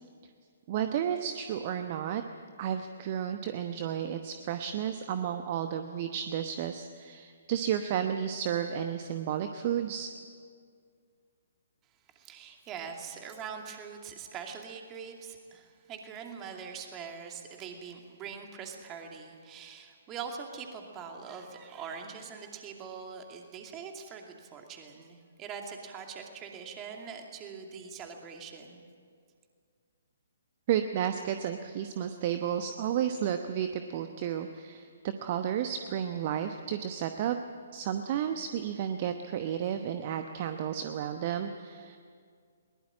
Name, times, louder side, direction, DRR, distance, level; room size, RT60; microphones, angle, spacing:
voice 1, 0.7-2.2 2.6-10.1 30.7-37.4 37.7-42.0, right 9 dB, 35° right, 8 dB, 1.0 m, -32 dB
voice 2, 12.1-28.8, right 6 dB, 20° right, 3 dB, 2.5 m, -43 dB
21.5 x 20.0 x 8.9 m, 2.1 s
figure-of-eight pair, 130°, 0 cm